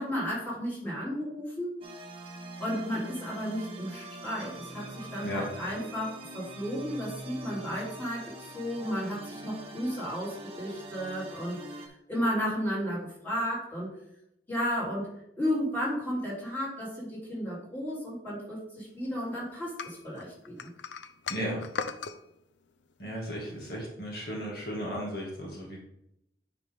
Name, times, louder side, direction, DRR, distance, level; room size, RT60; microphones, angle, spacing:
voice 1, 0.0-1.7 2.6-11.6 12.1-13.9 14.5-20.7, equal, 10° left, -7 dB, 3.0 m, -33 dB
sound 1, 1.8-11.9, right 1 dB, 30° right, 1.1 m, -44 dB
sound 2, 19.8-22.2, left 5 dB, 75° left, 0.5 m, -37 dB
voice 2, 21.3-21.6 23.0-25.8, equal, 55° left, -2 dB, 2.0 m, -35 dB
9.5 x 5.1 x 3.5 m, 0.79 s
head